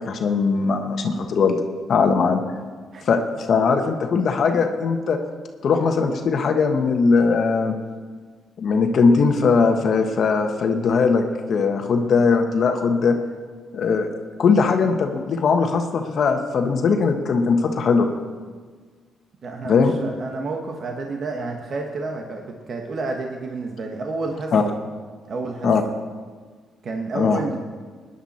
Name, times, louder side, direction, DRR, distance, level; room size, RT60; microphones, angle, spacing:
voice 1, 0.0-1.6 1.9-2.4 3.0-5.2 5.6-7.7 8.6-13.2 13.7-14.1 14.4-18.1 19.6-19.9 24.5-24.6 25.6-25.8 27.1-27.4, left 5 dB, 60° left, 4 dB, 1.4 m, -20 dB
voice 2, 19.4-24.7 25.3-25.9 26.8-27.6, right 3 dB, 55° right, 2 dB, 1.4 m, -30 dB
20.0 x 10.0 x 4.4 m, 1.5 s
cardioid pair, 90°, 0 cm